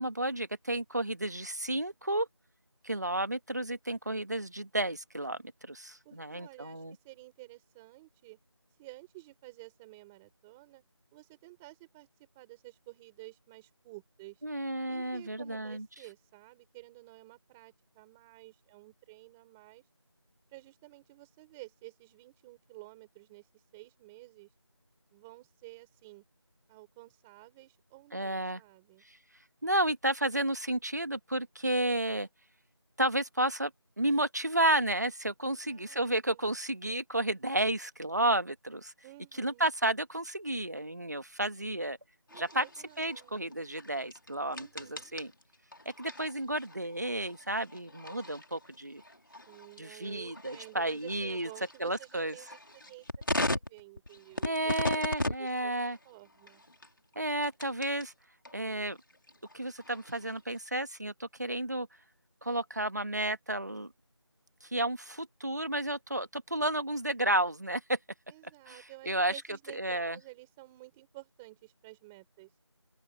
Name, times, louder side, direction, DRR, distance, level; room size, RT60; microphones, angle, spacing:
voice 1, 0.0-2.3 2.8-6.9 14.4-15.9 28.1-28.6 29.6-32.3 33.0-33.7 34.0-38.9 39.4-42.0 42.3-42.7 43.0-45.3 46.0-49.0 49.8-51.5 51.8-52.3 54.4-56.0 57.1-58.1 58.5-59.0 59.5-61.9 62.4-63.9 64.6-68.0 68.7-69.3 69.7-70.2, right 1 dB, 35° right, 1.6 m, -32 dB
voice 2, 6.0-8.4 8.8-10.8 11.1-14.4 14.9-19.8 20.5-24.5 25.1-26.2 26.7-29.0 35.4-36.5 39.0-39.7 42.3-43.6 44.5-45.1 49.5-56.6 68.3-72.5, right 21 dB, 5° right, 3.8 m, -52 dB
sound 1, 42.3-58.1 58.4-60.6, left 1 dB, 45° left, 3.4 m, -39 dB
open air
figure-of-eight pair, 180°, 15 cm